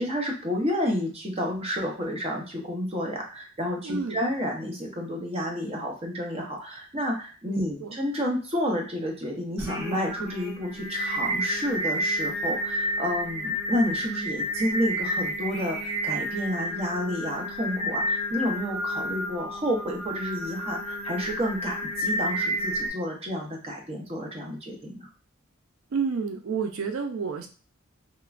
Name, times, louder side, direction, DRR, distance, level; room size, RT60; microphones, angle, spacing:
voice 1, 0.0-25.1, equal, 30° right, 0 dB, 0.7 m, -30 dB
voice 2, 3.8-4.2 7.5-8.0 25.9-27.5, right 5 dB, 90° right, 4 dB, 0.4 m, -30 dB
Singing, 9.6-22.9, equal, 5° right, 0.9 m, -30 dB
3.0 x 2.1 x 2.4 m, 0.37 s
head